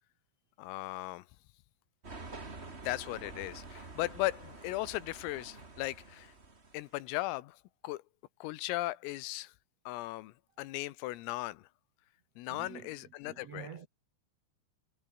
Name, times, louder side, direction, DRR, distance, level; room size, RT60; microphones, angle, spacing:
voice 1, 0.6-1.3 2.8-6.3 6.7-7.6 7.8-8.0 8.4-9.5 9.9-11.7 12.4-13.7, left 18 dB, 90° left, 3.8 m, -37 dB
sound 1, 2.0-7.0, right 3 dB, 25° right, 1.3 m, -48 dB
voice 2, 12.5-13.9, right 8 dB, 70° right, 1.4 m, -48 dB
omnidirectional pair, 5.8 m